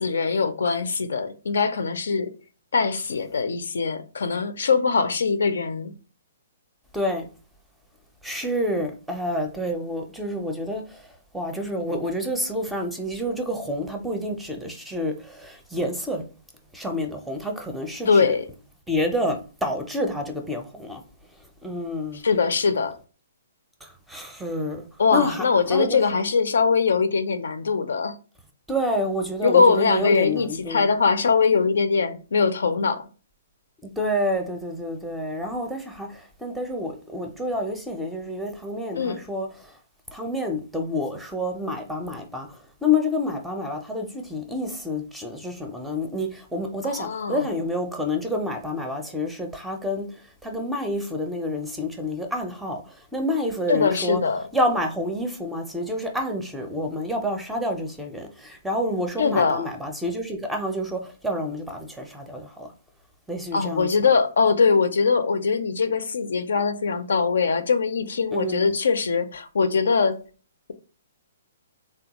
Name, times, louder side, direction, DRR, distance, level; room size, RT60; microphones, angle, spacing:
voice 1, 0.0-2.3 2.7-5.9 18.1-18.5 22.1-23.0 25.0-28.1 29.4-33.1 39.0-39.2 46.9-47.5 53.7-54.4 59.2-59.7 63.5-70.2, left 5 dB, 80° left, 0.4 m, -22 dB
voice 2, 6.9-7.3 8.2-11.1 11.3-16.2 16.7-18.3 18.9-21.0 21.6-22.2 23.8-24.9 25.1-26.0 28.7-30.9 33.8-39.5 40.1-42.5 42.8-50.1 50.4-54.2 54.5-62.7 63.3-63.9 68.3-68.7, left 1 dB, 5° right, 0.5 m, -28 dB
3.4 x 2.2 x 2.9 m
hypercardioid pair, 150°, 0 cm